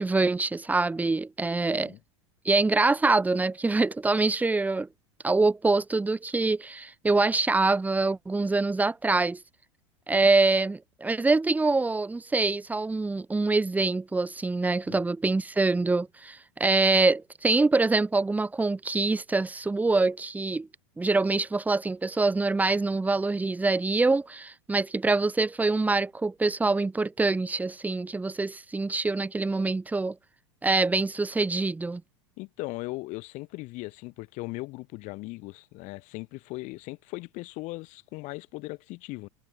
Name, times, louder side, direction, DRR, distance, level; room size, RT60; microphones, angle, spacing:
voice 1, 0.0-1.9 2.4-4.9 5.2-9.4 10.1-20.7 21.0-30.2 30.6-32.0, right 3 dB, 10° right, 2.2 m, -25 dB
voice 2, 1.6-2.0 14.9-15.0 32.4-39.3, left 23 dB, 50° left, 2.6 m, -38 dB
hypercardioid pair, 115°, 16 cm